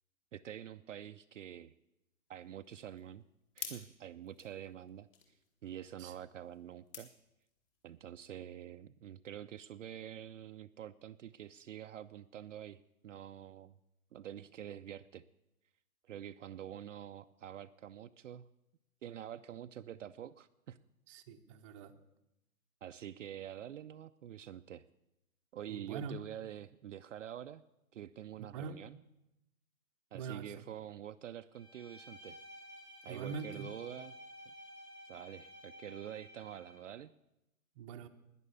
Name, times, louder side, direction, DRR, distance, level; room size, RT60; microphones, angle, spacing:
voice 1, 0.3-1.7 2.3-3.2 3.6-7.1 7.8-13.8 14.1-15.2 16.0-18.5 19.0-20.8 22.8-24.9 25.5-27.6 27.9-29.0 30.1-32.4 33.0-34.2 35.0-37.1, right 10 dB, 55° right, 9 dB, 0.5 m, -47 dB
sound 1, 2.3-7.9, left 7 dB, 40° left, 2.3 m, -52 dB
voice 2, 21.1-21.9 25.7-26.2 28.4-28.8 30.1-30.6 33.0-33.7 37.8-38.1, right 6 dB, 20° right, 6 dB, 0.7 m, -43 dB
Bowed string instrument, 31.5-36.9, equal, 85° left, 5.1 m, -53 dB
11.0 x 10.5 x 8.3 m, 0.91 s
hypercardioid pair, 140°, 44 cm